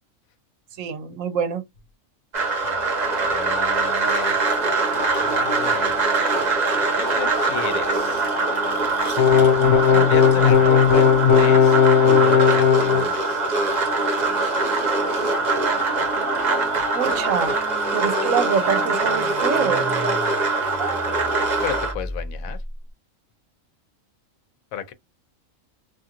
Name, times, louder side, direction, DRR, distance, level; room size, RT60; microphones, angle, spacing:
voice 1, 0.8-1.7 16.9-17.6 17.9-19.9 20.8-21.0, right 7 dB, 75° right, 1.0 m, -25 dB
sound 1, 2.3-21.9, right 3 dB, 35° right, 0.9 m, -23 dB
voice 2, 2.6-4.4 5.0-6.0 6.9-8.3 9.6-11.8 12.0-13.4 21.6-22.6 24.7-24.9, left 9 dB, 90° left, 1.0 m, -34 dB
sound 2, 9.2-13.1, left 7 dB, 65° left, 0.8 m, -16 dB
sound 3, 12.8-22.9, equal, ahead, 0.7 m, -39 dB
2.6 x 2.4 x 2.8 m
omnidirectional pair, 1.4 m